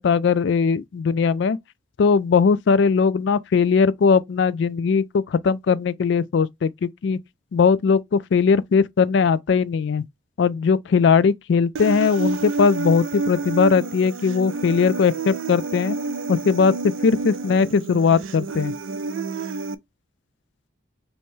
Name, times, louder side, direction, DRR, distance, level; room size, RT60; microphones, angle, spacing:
voice 1, 0.0-1.6 2.0-7.2 7.5-10.0 10.4-16.0 16.3-16.7 17.0-18.7, left 5 dB, 60° left, 0.3 m, -19 dB
Human voice, 11.7-19.7, right 3 dB, 75° right, 0.4 m, -29 dB
5.4 x 2.1 x 3.1 m
head